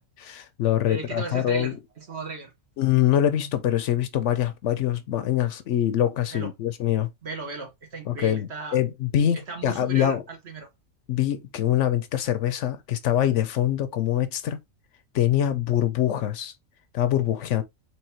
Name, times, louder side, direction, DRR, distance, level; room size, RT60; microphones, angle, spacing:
voice 1, 0.2-1.7 2.8-7.1 8.1-10.2 11.1-14.6 15.1-16.5 16.9-17.6, left 11 dB, 70° left, 0.9 m, -24 dB
voice 2, 0.8-2.5 6.3-6.5 7.2-8.8 9.5-10.7, right 3 dB, 55° right, 1.6 m, -36 dB
4.7 x 3.4 x 2.9 m
omnidirectional pair, 1.3 m